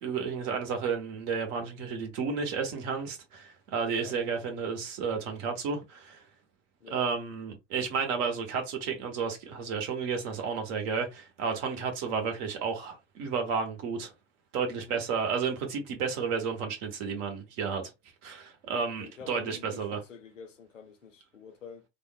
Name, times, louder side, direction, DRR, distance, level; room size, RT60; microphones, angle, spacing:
voice 1, 0.0-6.2 6.9-14.1 14.5-17.9 18.2-20.0, right 5 dB, 50° right, 1.0 m, -32 dB
voice 2, 6.8-7.1 11.6-11.9 14.7-15.0 19.0-21.9, left 5 dB, 90° left, 0.6 m, -48 dB
3.4 x 2.0 x 2.2 m
figure-of-eight pair, 80°, 37 cm